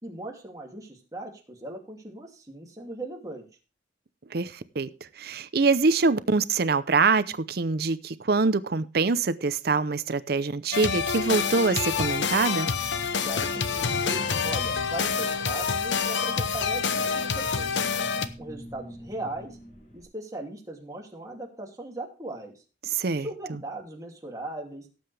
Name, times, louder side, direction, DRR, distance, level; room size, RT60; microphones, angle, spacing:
voice 1, 0.0-3.5 13.2-17.8 18.4-19.6 19.9-22.5 23.2-24.8, right 2 dB, 20° right, 0 dB, 2.7 m, -39 dB
voice 2, 4.3-4.9 5.2-12.7 22.9-23.6, right 4 dB, 55° right, 15 dB, 0.6 m, -24 dB
sound 1, 10.7-18.3, left 6 dB, 80° left, 0.9 m, -27 dB
sound 2, 10.9-20.0, equal, 45° left, 3.9 m, -47 dB
17.5 x 7.8 x 3.4 m, 0.34 s
head